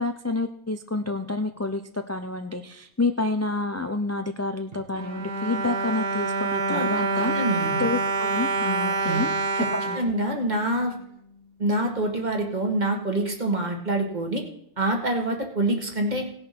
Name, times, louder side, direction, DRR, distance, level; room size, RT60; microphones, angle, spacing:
voice 1, 0.0-7.3 7.8-10.0, left 3 dB, 25° left, 6 dB, 0.4 m, -29 dB
Bowed string instrument, 4.7-11.0 11.6-11.7 12.0-12.2, right 3 dB, 55° right, 1.2 m, -27 dB
voice 2, 7.3-7.9 9.0-9.2 9.6-9.7 9.9-10.9 11.6-14.4 14.8-16.3, right 1 dB, 35° right, 2 dB, 1.9 m, -26 dB
17.0 x 6.6 x 5.9 m, 0.71 s
omnidirectional pair, 1.3 m